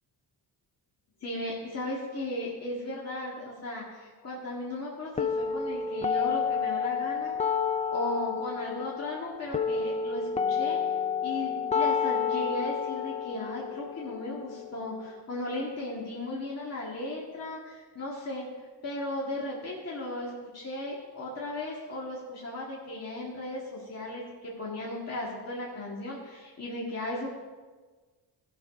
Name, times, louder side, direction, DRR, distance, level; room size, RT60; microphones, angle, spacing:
voice 1, 1.2-7.3 7.9-11.0 11.2-18.4 18.8-27.4, left 1 dB, 35° left, -5 dB, 2.0 m, -36 dB
sound 1, 5.2-15.2, left 6 dB, 20° left, 0.3 m, -30 dB
16.5 x 6.0 x 5.1 m, 1.4 s
cardioid pair, 135°, 44 cm